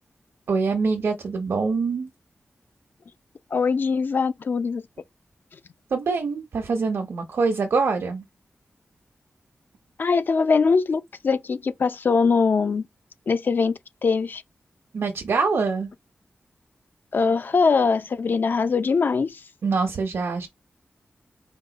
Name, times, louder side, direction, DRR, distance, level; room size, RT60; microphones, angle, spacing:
voice 1, 0.5-2.1 5.9-8.2 14.9-15.9 19.6-20.5, right 4 dB, 80° right, 1.0 m, -24 dB
voice 2, 3.5-4.8 10.0-12.9 13.3-14.4 17.1-19.4, left 5 dB, 55° left, 0.6 m, -22 dB
5.3 x 2.3 x 4.0 m
wide cardioid pair, 125°, 4 cm